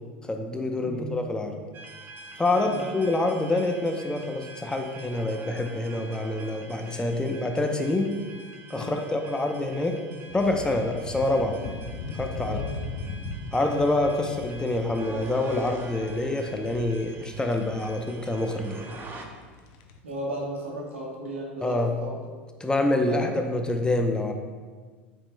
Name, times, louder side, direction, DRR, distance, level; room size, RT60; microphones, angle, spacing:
voice 1, 0.2-1.6 2.4-8.1 8.7-10.0 10.3-11.6 12.1-12.6 13.5-18.9 21.6-22.0 22.6-24.3, left 2 dB, 10° left, 4 dB, 0.7 m, -26 dB
voice 2, 0.8-1.2 2.6-2.9 8.7-9.0 12.4-12.7 20.0-22.2 23.0-23.5, right 1 dB, 90° right, -2 dB, 1.4 m, -35 dB
sound 1, 1.7-19.2, right 3 dB, 35° right, 0.9 m, -46 dB
sound 2, 10.3-20.0, left 3 dB, 60° left, 0.7 m, -39 dB
8.4 x 5.1 x 2.2 m, 1.5 s
hypercardioid pair, 85°, 6 cm